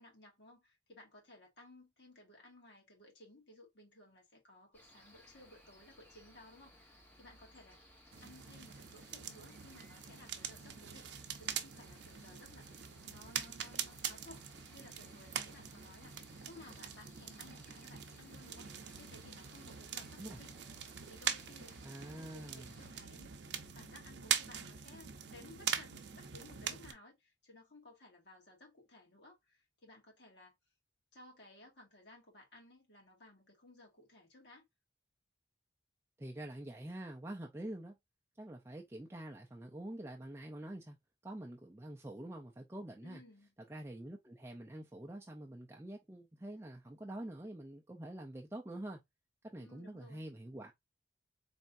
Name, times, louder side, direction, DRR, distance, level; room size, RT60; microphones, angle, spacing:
voice 1, 0.0-7.8 8.2-12.7 13.1-14.5 14.7-18.7 19.0-20.5 21.0-23.3 23.7-30.5 31.1-34.6 43.0-43.5 49.6-50.2, left 1 dB, 65° left, 1.8 m, -58 dB
Cricket, 4.7-22.9, left 1 dB, 10° left, 1.1 m, -62 dB
sound 1, 8.1-26.9, right 8 dB, 65° right, 0.6 m, -43 dB
voice 2, 21.8-22.7 36.2-37.9 38.4-41.0 41.2-43.2 43.7-49.0 49.4-50.7, right 1 dB, 15° right, 0.4 m, -46 dB
4.2 x 3.4 x 2.5 m
head